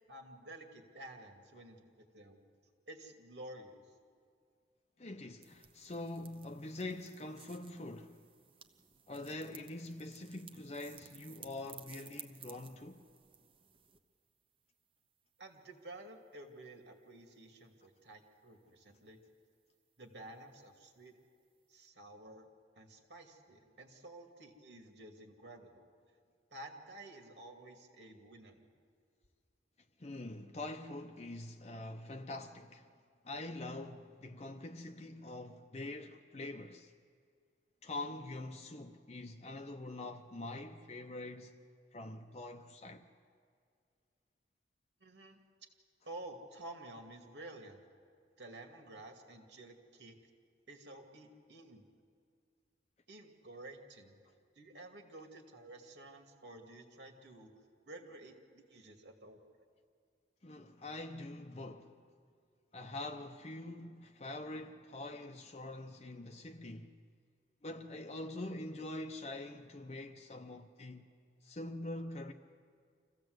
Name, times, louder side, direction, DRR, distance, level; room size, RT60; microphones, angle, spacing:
voice 1, 0.1-2.4 2.9-3.9 15.4-19.2 20.0-21.1 21.7-22.5 22.7-25.8 26.5-28.6 45.0-45.4 46.0-47.8 48.4-50.2 50.7-51.9 53.1-54.2 54.5-57.5 57.9-59.7, right 1 dB, 80° right, 2.4 m, -52 dB
voice 2, 5.0-8.2 9.1-13.1 30.0-32.9 33.2-36.9 37.8-41.6 41.9-43.1 60.4-62.0 62.7-67.0 67.6-71.1 71.4-72.3, left 2 dB, 35° left, 0.7 m, -44 dB
sound 1, 5.4-14.0, right 7 dB, 30° right, 0.9 m, -57 dB
26.0 x 15.5 x 8.0 m
head